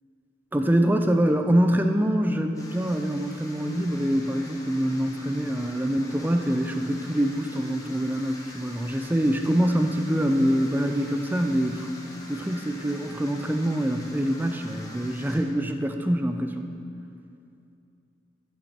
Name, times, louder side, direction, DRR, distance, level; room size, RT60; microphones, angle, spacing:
voice 1, 0.5-11.9 12.3-16.7, equal, 10° right, 6 dB, 0.4 m, -25 dB
sound 1, 2.5-15.4, left 1 dB, 20° left, 1.2 m, -44 dB
14.0 x 7.3 x 4.4 m, 2.6 s
head